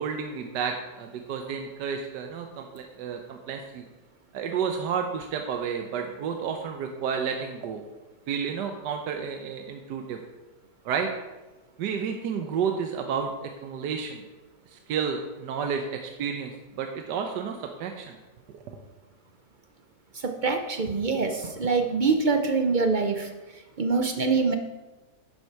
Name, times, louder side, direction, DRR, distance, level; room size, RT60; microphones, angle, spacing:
voice 1, 0.0-3.9 4.3-7.8 8.3-10.2 10.8-11.1 11.8-14.2 14.7-18.2 18.5-18.6, right 6 dB, 80° right, 4 dB, 1.4 m, -31 dB
voice 2, 20.1-23.3 23.8-24.5, right 4 dB, 55° right, 6 dB, 0.5 m, -24 dB
11.0 x 7.3 x 4.7 m, 1.1 s
omnidirectional pair, 1.8 m